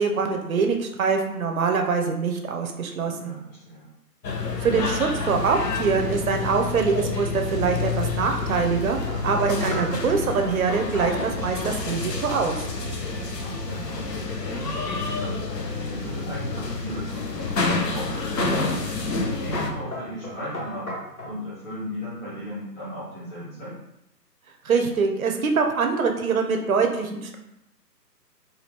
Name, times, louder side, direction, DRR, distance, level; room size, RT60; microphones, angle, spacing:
voice 1, 0.0-3.3 4.6-9.0 9.2-12.6 24.6-27.4, right 5 dB, 60° right, 4 dB, 0.5 m, -24 dB
voice 2, 3.0-3.9 13.0-15.4 15.9-18.7 19.1-21.0 21.2-23.8, equal, 10° left, -13 dB, 1.0 m, -36 dB
sound 1, 4.2-19.7, left 3 dB, 75° left, 0.7 m, -29 dB
sound 2, 7.0-10.4 10.9-16.4 16.9-20.7, right 1 dB, 10° right, 0.7 m, -41 dB
sound 3, 9.1-10.0 10.4-10.6 10.9-11.1 11.4-12.1 12.3-12.7 16.1-16.7 17.3-17.7 18.5-18.8 19.1-19.3 19.5-21.4, left 1 dB, 60° left, 1.3 m, -36 dB
3.2 x 2.3 x 3.2 m, 0.85 s
figure-of-eight pair, 145°, 49 cm